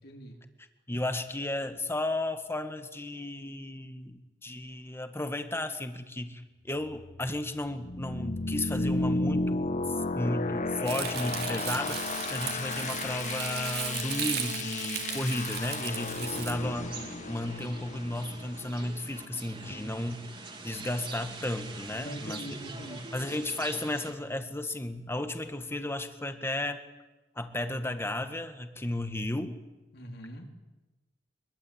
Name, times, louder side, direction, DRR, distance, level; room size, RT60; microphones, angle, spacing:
voice 1, 0.0-0.4 19.5-20.1 21.9-23.1 29.9-30.5, equal, 60° left, 2 dB, 3.8 m, -43 dB
voice 2, 0.9-9.7 10.2-12.0 12.3-16.9 17.3-20.2 20.6-22.4 22.7-26.8 27.4-29.6, left 1 dB, 15° left, 8 dB, 1.7 m, -34 dB
sound 1, 6.8-19.4, left 2 dB, 40° left, 1.1 m, -34 dB
Crumpling crinkling, 10.9-16.5, right 10 dB, 60° right, 3.0 m, -36 dB
sound 2, 16.7-24.1, right 3 dB, 30° right, 3.3 m, -44 dB
24.0 x 22.5 x 8.8 m, 1.1 s
head